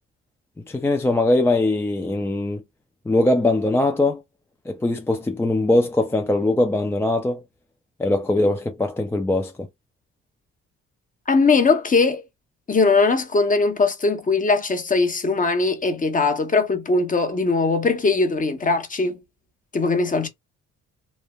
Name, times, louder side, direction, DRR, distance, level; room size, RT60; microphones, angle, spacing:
voice 1, 0.7-2.6 3.1-4.2 4.7-7.4 8.0-9.7, left 2 dB, 10° left, 0.3 m, -21 dB
voice 2, 11.3-12.2 12.7-19.2 19.7-20.3, left 3 dB, 25° left, 0.8 m, -20 dB
3.1 x 2.0 x 2.3 m
cardioid pair, 90°, 30 cm